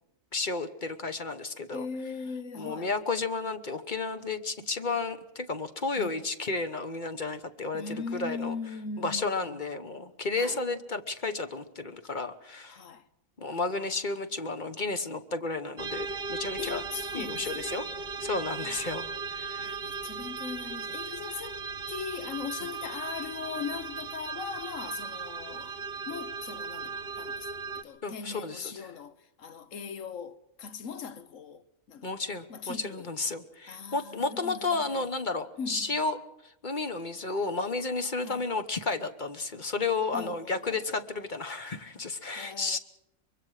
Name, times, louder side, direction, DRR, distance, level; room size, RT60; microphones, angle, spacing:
voice 1, 0.3-1.8 2.5-8.5 9.0-12.8 13.4-16.8 17.1-17.8 18.2-19.8 28.0-28.7 32.0-36.2 36.4-42.8, left 3 dB, 40° left, 1.1 m, -32 dB
voice 2, 1.7-2.9 6.0-6.2 7.7-9.6 10.4-10.6 12.7-13.1 13.4-13.6 16.6-17.8 18.6-19.1 19.6-25.8 26.0-32.1 32.5-33.1 33.7-35.1 35.6-36.0 38.2-38.4 40.1-41.0 42.3-42.8, left 6 dB, 75° left, 1.4 m, -40 dB
sound 1, 15.8-27.8, right 4 dB, 45° right, 1.1 m, -37 dB
24.5 x 23.0 x 4.9 m
omnidirectional pair, 1.4 m